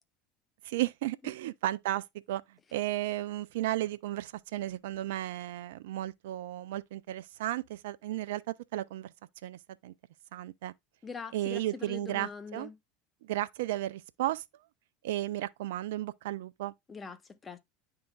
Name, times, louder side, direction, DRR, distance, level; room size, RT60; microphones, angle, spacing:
voice 1, 0.6-2.4 2.7-9.1 9.4-9.9 10.3-10.7 11.3-12.7 13.2-14.4 15.0-16.7, right 15 dB, 75° right, 0.3 m, -34 dB
voice 2, 11.0-12.8 16.9-17.6, left 5 dB, 25° left, 0.9 m, -43 dB
10.5 x 3.8 x 2.3 m
hypercardioid pair, 85°, 0 cm